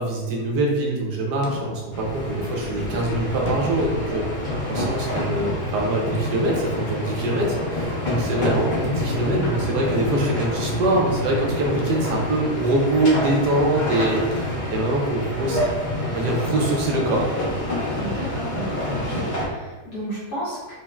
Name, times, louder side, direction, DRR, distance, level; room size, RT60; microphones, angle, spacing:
voice 1, 0.0-4.2 4.7-15.6 16.1-17.3, right 1 dB, 85° right, -1 dB, 1.4 m, -24 dB
sound 1, 1.4-1.7 2.6-2.7 3.5-4.0 4.6-4.7 8.1-8.5 10.6-11.0 11.3-11.4 11.6-12.7 14.3-14.5 16.4-16.8, left 3 dB, 90° left, 1.3 m, -36 dB
sound 2, 1.9-19.5, left 1 dB, 35° left, 0.8 m, -27 dB
voice 2, 18.0-20.7, right 1 dB, 65° left, -9 dB, 1.7 m, -33 dB
5.1 x 2.5 x 2.3 m, 1.2 s
omnidirectional pair, 1.7 m